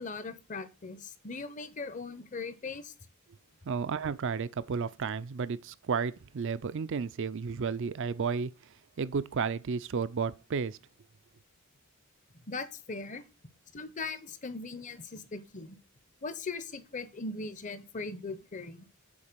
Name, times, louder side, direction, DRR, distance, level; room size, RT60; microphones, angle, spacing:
voice 1, 0.0-2.9 12.5-13.2 13.7-15.8 16.2-18.9, left 3 dB, 35° left, 0.8 m, -39 dB
voice 2, 3.7-10.8, right 5 dB, 55° right, 0.4 m, -32 dB
7.2 x 4.3 x 6.7 m
head